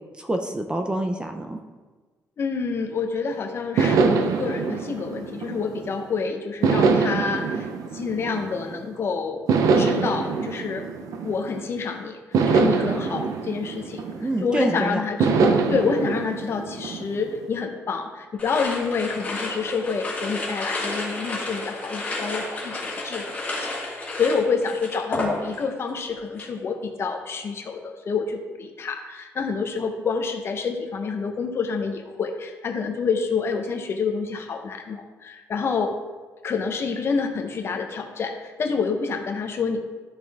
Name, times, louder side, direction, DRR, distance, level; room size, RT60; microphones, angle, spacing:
voice 1, 0.2-1.6 14.2-15.0, right 1 dB, 15° right, 5 dB, 0.6 m, -26 dB
voice 2, 2.4-9.4 9.7-10.8 11.2-12.2 12.5-14.0 14.4-23.3 23.6-35.9 36.4-39.8, left 5 dB, 45° left, 4 dB, 1.0 m, -28 dB
sound 1, 3.8-6.0 6.6-8.9 9.5-11.7 12.3-14.6 15.2-17.5, right 4 dB, 70° right, 0.8 m, -24 dB
sound 2, 18.4-25.8 26.1-26.6, left 2 dB, 20° left, 2.5 m, -31 dB
12.5 x 6.2 x 3.6 m, 1.3 s
cardioid pair, 135°, 6 cm